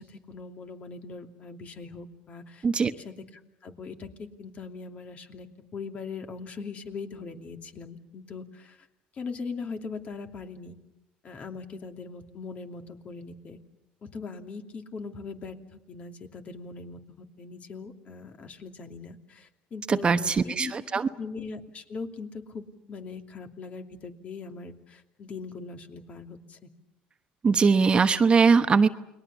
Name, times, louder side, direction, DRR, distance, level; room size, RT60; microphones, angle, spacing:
voice 1, 0.0-2.7 3.0-4.1 4.4-5.5 5.7-8.8 9.1-10.7 11.2-13.6 14.1-26.7, left 4 dB, 40° left, 5 dB, 2.8 m, -40 dB
voice 2, 19.9-21.1 27.4-28.9, right 5 dB, 30° right, 10 dB, 1.0 m, -21 dB
29.5 x 21.5 x 7.1 m, 0.90 s
cardioid pair, 115°, 3 cm